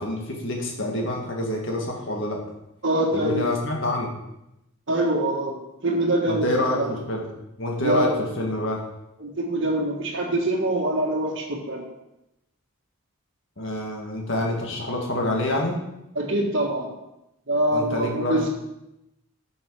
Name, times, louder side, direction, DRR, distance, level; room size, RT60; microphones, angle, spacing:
voice 1, 0.0-2.4 3.1-4.1 6.3-7.2 7.6-8.1 8.4-8.8 13.6-15.8 17.7-18.4, left 1 dB, 55° left, 0 dB, 1.9 m, -27 dB
voice 2, 2.8-3.5 4.9-6.5 6.7-6.9 7.8-8.1 9.2-11.8 16.1-16.9 17.5-18.5, right 1 dB, 55° right, -1 dB, 1.5 m, -24 dB
8.9 x 6.5 x 4.8 m, 0.89 s
head